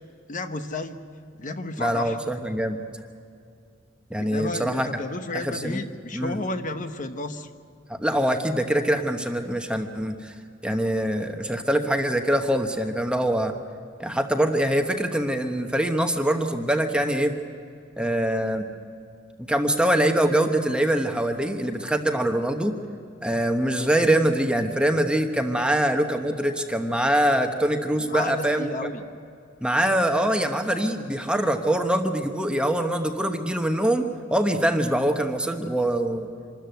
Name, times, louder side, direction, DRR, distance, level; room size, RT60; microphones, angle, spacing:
voice 1, 0.3-1.0 1.4-2.2 4.2-7.5 25.6-25.8 28.0-29.0, left 2 dB, 40° left, 8 dB, 1.1 m, -32 dB
voice 2, 1.8-2.8 4.1-4.9 5.3-5.8 6.1-6.4 7.9-10.3 10.6-13.5 14.0-17.3 18.0-18.7 19.4-22.7 23.2-28.7 29.6-36.3, right 1 dB, 5° right, 5 dB, 1.1 m, -24 dB
25.5 x 14.0 x 9.2 m, 2.4 s
head